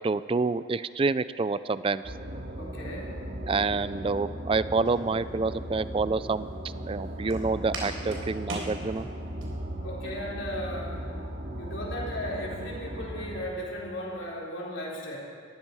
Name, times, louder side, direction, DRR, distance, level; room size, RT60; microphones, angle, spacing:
voice 1, 0.0-2.1 3.5-6.5 6.9-9.1, right 4 dB, 25° right, 15 dB, 0.3 m, -28 dB
sound 1, 2.0-13.4, right 1 dB, 40° right, 1.7 m, -37 dB
voice 2, 2.6-3.2 9.8-11.1 11.6-15.2, equal, 60° left, -4 dB, 4.2 m, -36 dB
Walk footsteps, 4.8-9.4, right 1 dB, 75° right, 3.7 m, -41 dB
20.0 x 14.5 x 4.7 m, 2.5 s
head